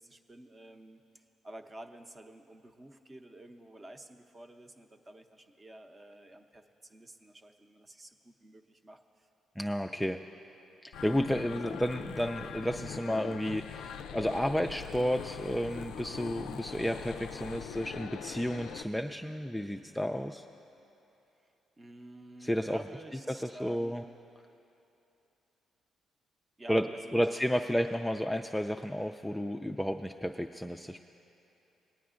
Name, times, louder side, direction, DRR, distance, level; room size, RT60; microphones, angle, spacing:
voice 1, 0.0-9.3 21.8-24.0 26.6-27.2 27.5-27.6 27.9-28.3, right 1 dB, 25° right, 6 dB, 0.7 m, -50 dB
voice 2, 9.6-10.2 10.8-20.4 22.4-22.8 23.6-24.0 26.7-26.9 27.1-31.0, equal, 5° left, 4 dB, 0.3 m, -32 dB
sound 1, 10.9-18.8, left 8 dB, 90° left, 0.3 m, -42 dB
sound 2, 15.9-20.9, equal, 75° right, 1.5 m, -58 dB
21.5 x 9.2 x 2.5 m, 2.9 s
cardioid pair, 90°, 0 cm